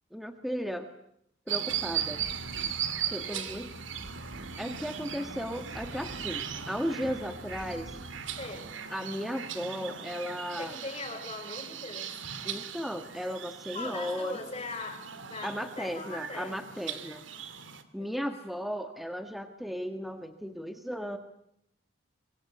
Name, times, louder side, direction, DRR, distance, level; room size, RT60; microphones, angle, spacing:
voice 1, 0.1-0.9 1.5-2.2 3.1-3.7 4.6-8.0 8.9-10.8 12.4-14.4 15.4-17.2 17.9-21.2, equal, ahead, 7 dB, 1.6 m, -35 dB
sound 1, 1.5-17.8, right 8 dB, 70° right, 2.5 m, -38 dB
sound 2, 1.7-8.7, right 1 dB, 40° right, 2.2 m, -47 dB
voice 2, 3.1-3.5 8.4-8.7 10.6-12.2 13.7-16.7 18.0-18.3, left 3 dB, 30° left, 7 dB, 5.1 m, -41 dB
25.0 x 25.0 x 8.4 m, 0.77 s
head